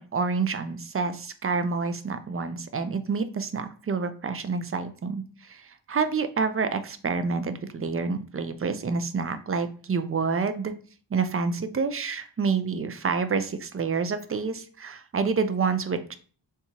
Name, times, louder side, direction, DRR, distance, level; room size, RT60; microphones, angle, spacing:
voice 1, 0.0-10.7 11.1-16.1, right 5 dB, 30° right, 10 dB, 0.4 m, -28 dB
3.5 x 2.8 x 2.8 m, 0.41 s
wide cardioid pair, 65°, 45 cm